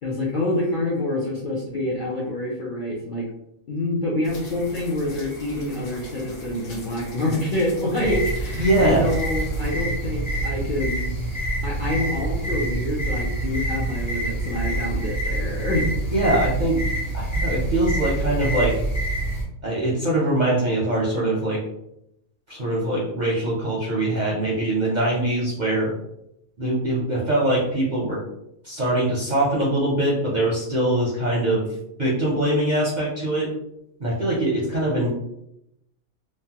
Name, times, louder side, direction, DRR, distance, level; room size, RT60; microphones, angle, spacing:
voice 1, 0.0-3.2 3.7-15.9, left 1 dB, 60° left, -4 dB, 0.5 m, -27 dB
sound 1, 4.2-9.7, equal, 90° left, 1.2 m, -41 dB
sound 2, 8.0-19.4, right 2 dB, 40° left, 0.9 m, -26 dB
voice 2, 8.6-9.1 16.1-16.8 17.1-18.7 19.6-21.6 22.5-25.9 26.6-28.2 28.6-31.7 32.0-33.5 34.0-35.1, right 1 dB, 50° right, -6 dB, 0.5 m, -22 dB
3.1 x 2.1 x 2.8 m, 0.80 s
omnidirectional pair, 1.4 m